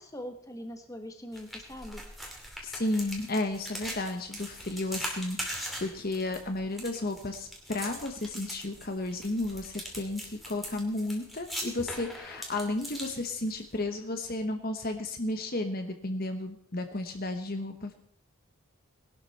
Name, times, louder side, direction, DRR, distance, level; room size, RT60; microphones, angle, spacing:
voice 1, 0.0-2.0, equal, 15° left, 5 dB, 1.4 m, -42 dB
sound 1, 1.3-13.8, equal, ahead, 2.6 m, -41 dB
voice 2, 2.6-17.9, left 2 dB, 45° left, 6 dB, 1.1 m, -33 dB
20.0 x 12.0 x 4.2 m, 0.62 s
head